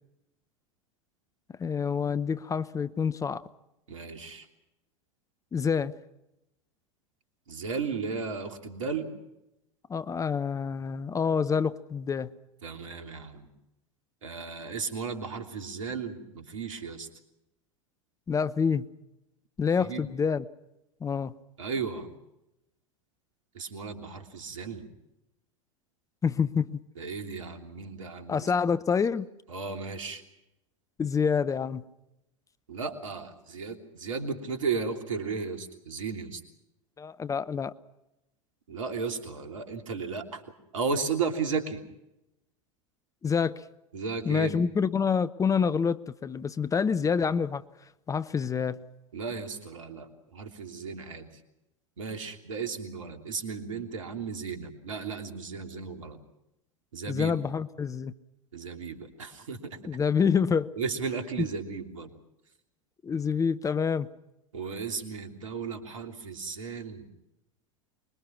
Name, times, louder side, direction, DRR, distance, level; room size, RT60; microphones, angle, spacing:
voice 1, 1.6-3.4 5.5-5.9 9.9-12.3 18.3-18.9 19.6-20.4 21.0-21.3 26.2-26.7 28.3-29.3 31.0-31.8 37.0-37.7 43.2-43.6 44.2-47.6 48.1-48.8 57.1-58.1 59.8-60.7 63.0-64.1, left 6 dB, 20° left, 16 dB, 0.9 m, -27 dB
voice 2, 3.9-4.5 7.5-9.1 12.6-13.5 14.2-17.1 19.8-20.1 21.6-22.1 23.5-24.9 27.0-28.5 29.5-30.2 32.7-36.4 38.7-40.4 40.7-41.8 43.9-44.6 49.1-51.3 52.0-56.2 56.9-57.4 58.5-59.8 60.8-62.1 64.5-67.1, right 5 dB, 75° right, 5 dB, 3.2 m, -35 dB
25.0 x 22.0 x 6.0 m, 0.88 s
figure-of-eight pair, 90°, 17 cm